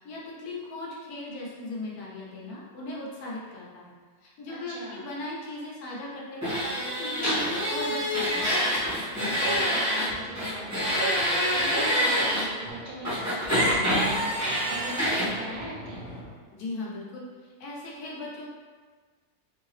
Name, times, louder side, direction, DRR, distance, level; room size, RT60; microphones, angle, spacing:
voice 1, 0.0-3.9 4.2-6.5 6.8-8.4 16.5-18.5, left 2 dB, 85° left, -4 dB, 1.3 m, -38 dB
voice 2, 4.5-5.0 9.4-16.0, right 1 dB, 60° right, -5 dB, 1.1 m, -40 dB
sound 1, 6.4-10.1 10.3-12.4 13.0-15.3, equal, 10° right, 1.1 m, -26 dB
sound 2, 8.7-16.4, equal, 45° left, 0.6 m, -44 dB
3.1 x 2.7 x 3.1 m, 1.5 s
omnidirectional pair, 1.5 m